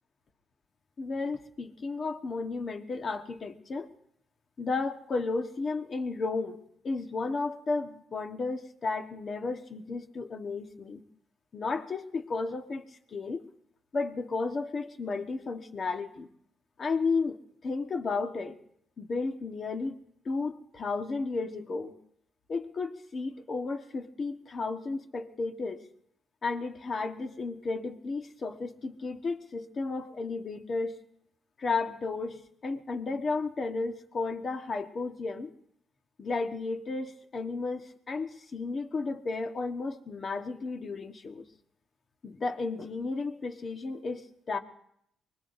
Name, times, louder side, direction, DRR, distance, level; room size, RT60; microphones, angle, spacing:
voice 1, 1.0-3.9 4.6-6.6 6.8-11.0 11.5-13.5 13.9-16.3 16.8-17.4 17.6-18.6 19.0-20.0 20.2-22.0 22.5-25.9 26.4-31.0 31.6-35.5 36.2-41.4 42.2-44.6, left 3 dB, 45° left, 6 dB, 1.3 m, -33 dB
24.0 x 21.0 x 2.6 m, 0.72 s
cardioid pair, 90°, 0 cm